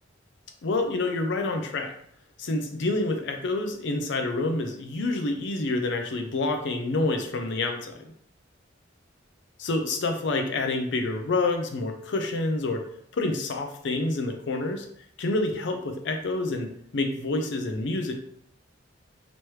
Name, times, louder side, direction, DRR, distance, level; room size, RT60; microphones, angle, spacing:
voice 1, 0.6-1.9 2.4-8.1 9.6-12.8 13.1-14.9 15.2-18.1, left 2 dB, 65° left, 5 dB, 0.5 m, -28 dB
4.6 x 3.0 x 3.1 m, 0.68 s
head